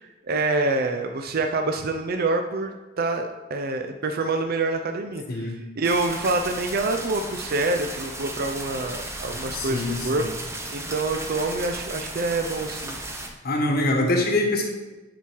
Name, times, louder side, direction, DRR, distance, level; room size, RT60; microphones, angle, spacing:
voice 1, 0.3-13.0, right 2 dB, 50° right, 5 dB, 0.5 m, -26 dB
sound 1, 5.8-13.3, right 2 dB, 15° right, 0.8 m, -35 dB
voice 2, 9.5-10.3 13.4-14.7, left 1 dB, 50° left, 2 dB, 1.2 m, -24 dB
10.5 x 4.6 x 4.6 m, 1.1 s
head